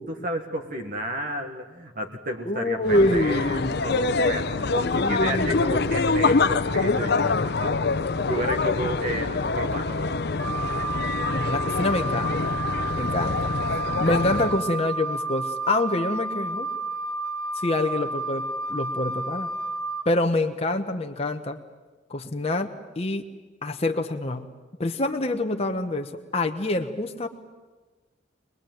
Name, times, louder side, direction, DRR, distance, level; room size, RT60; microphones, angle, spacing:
voice 1, 0.1-7.8 8.3-10.1, right 1 dB, 50° right, 4 dB, 1.6 m, -32 dB
voice 2, 2.5-3.8 4.9-5.9 11.2-12.5 13.0-13.5 14.0-16.7 17.5-19.5 20.0-21.6 22.1-23.2 23.6-24.5 24.8-27.3, left 2 dB, 35° left, 4 dB, 1.0 m, -26 dB
sound 1, 2.8-14.6, left 3 dB, 60° left, 0.8 m, -25 dB
Wind instrument woodwind instrument, 10.4-20.0, right 3 dB, ahead, 2.5 m, -31 dB
24.0 x 20.5 x 9.2 m, 1.3 s
head